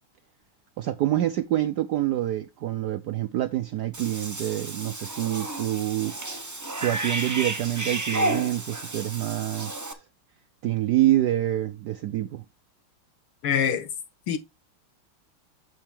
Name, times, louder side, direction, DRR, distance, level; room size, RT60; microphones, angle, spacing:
voice 1, 0.8-6.2 6.8-10.0 10.6-12.4, right 14 dB, 75° right, 0.9 m, -26 dB
Cat / Bathtub (filling or washing), 3.9-9.9, right 2 dB, 30° right, 0.3 m, -32 dB
voice 2, 13.4-13.9 14.3-14.4, left 8 dB, 75° left, 2.0 m, -24 dB
8.6 x 6.5 x 3.5 m
omnidirectional pair, 2.4 m